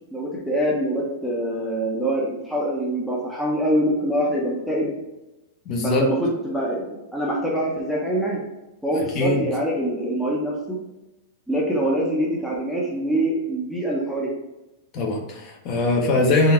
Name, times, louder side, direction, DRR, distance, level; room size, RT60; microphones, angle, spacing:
voice 1, 0.0-4.9 5.8-8.4 8.8-10.8 11.5-14.3, right 1 dB, ahead, -5 dB, 0.6 m, -24 dB
voice 2, 5.7-6.1 9.1-9.5 14.9-16.5, left 2 dB, 35° left, 0 dB, 0.8 m, -21 dB
3.7 x 2.6 x 4.3 m, 0.98 s
supercardioid pair, 155°, 0 cm